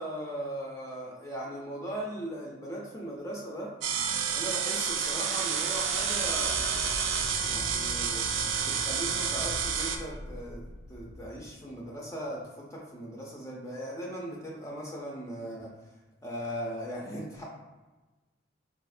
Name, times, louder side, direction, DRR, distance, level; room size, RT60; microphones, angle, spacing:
voice 1, 0.0-3.7 4.3-8.2 8.6-10.6 10.9-15.8 16.2-17.4, right 1 dB, 15° left, -3 dB, 0.3 m, -38 dB
sound 1, 3.8-10.0, right 6 dB, 90° right, 0.4 m, -29 dB
sound 2, 5.8-12.1, left 1 dB, 85° left, 0.4 m, -43 dB
4.0 x 2.0 x 2.4 m, 1.2 s
head